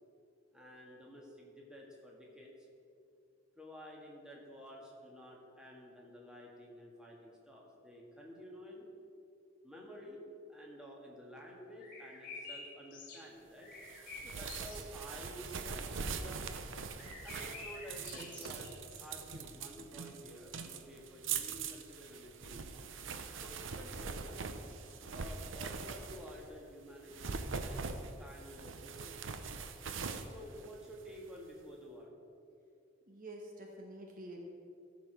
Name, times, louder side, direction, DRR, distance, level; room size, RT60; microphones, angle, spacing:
voice 1, 0.5-2.7 3.6-8.9 9.6-13.7 14.2-16.5 17.2-18.7 19.0-22.6 23.4-24.5 25.1-29.2 30.2-32.1, equal, 5° right, -3 dB, 1.6 m, -51 dB
sound 1, 11.8-13.3 13.6-14.9 15.8-16.1 16.9-19.4 19.8-19.9 22.0-22.2 24.9-25.1, left 3 dB, 45° left, 2.1 m, -50 dB
sound 2, 13.8-26.5 27.0-31.3, right 5 dB, 80° right, 0.7 m, -42 dB
voice 2, 33.1-34.4, right 1 dB, 45° right, 1 dB, 1.1 m, -48 dB
14.5 x 5.1 x 6.1 m, 2.5 s
head